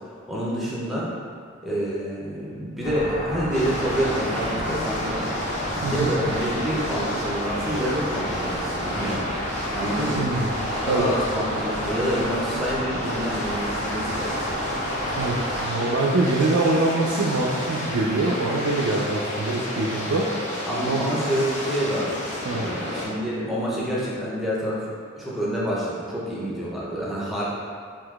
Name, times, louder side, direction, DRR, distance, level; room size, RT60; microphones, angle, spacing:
voice 1, 0.3-1.1 1.6-5.3 5.7-9.2 9.7-10.3 10.9-14.4 20.6-24.8 25.2-27.5, equal, ahead, -7 dB, 0.5 m, -28 dB
sound 1, 2.8-15.6, equal, 80° left, 1.3 m, -31 dB
sound 2, 3.5-23.1, left 1 dB, 35° left, 0.7 m, -31 dB
voice 2, 5.8-6.1 10.2-10.5 10.9-11.1 15.1-20.3 20.8-21.1 22.5-22.7, right 2 dB, 85° right, -3 dB, 0.3 m, -24 dB
3.6 x 2.8 x 2.3 m, 2.1 s
head